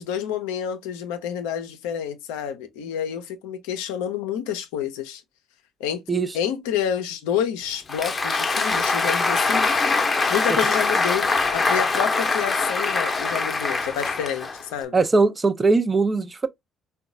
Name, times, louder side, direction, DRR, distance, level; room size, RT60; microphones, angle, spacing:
voice 1, 0.0-5.2 5.8-6.0 6.3-9.7 10.3-15.0, left 9 dB, 80° left, 0.5 m, -28 dB
Applause, 7.7-14.8, left 3 dB, 35° left, 0.7 m, -23 dB
voice 2, 14.9-16.5, right 3 dB, 30° right, 0.5 m, -20 dB
3.7 x 2.2 x 2.5 m
hypercardioid pair, 55°, 0 cm